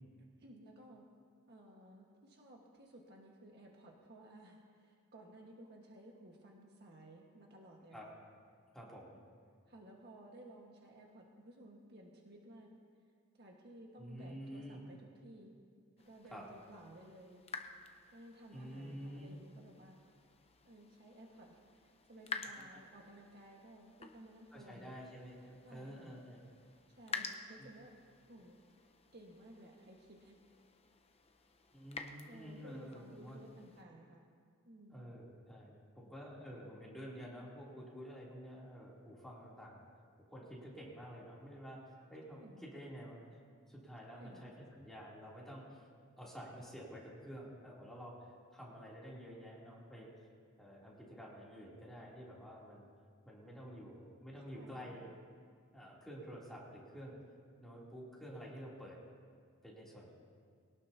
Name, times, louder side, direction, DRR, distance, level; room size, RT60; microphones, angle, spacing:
voice 1, 0.4-1.1 1.5-8.1 9.2-9.3 9.7-12.7 13.3-15.5 16.0-17.4 18.1-20.0 20.6-24.9 25.6-26.1 27.0-28.0 28.3-28.6 29.1-30.4 32.3-34.3 34.7-35.0 42.3-42.7 44.1-44.5 54.5-54.9, right 1 dB, 50° right, -1 dB, 1.6 m, -56 dB
voice 2, 8.7-9.2 14.0-14.8 16.3-16.4 18.5-19.4 22.5-22.8 24.5-26.4 27.6-27.7 31.7-33.4 34.9-43.2 43.6-45.9 46.2-50.1 50.6-52.9 53.2-55.1 55.7-57.2 57.6-59.0 59.6-60.1, equal, ahead, -6 dB, 3.1 m, -50 dB
sound 1, 16.0-33.8, left 4 dB, 30° left, 0.8 m, -51 dB
21.5 x 18.0 x 2.9 m, 2.1 s
head